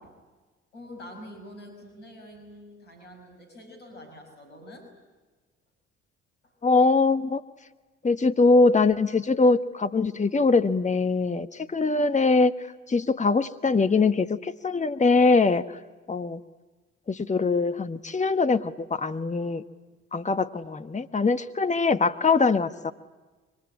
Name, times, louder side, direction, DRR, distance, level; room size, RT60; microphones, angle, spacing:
voice 1, 0.7-4.9 6.4-6.5, left 1 dB, 80° left, 1 dB, 6.3 m, -46 dB
voice 2, 6.6-7.4 8.0-12.5 12.9-15.6 16.1-16.4 17.1-19.6 20.1-22.9, left 3 dB, 20° left, 9 dB, 1.3 m, -22 dB
27.0 x 24.5 x 8.8 m, 1.3 s
figure-of-eight pair, 45°, 35 cm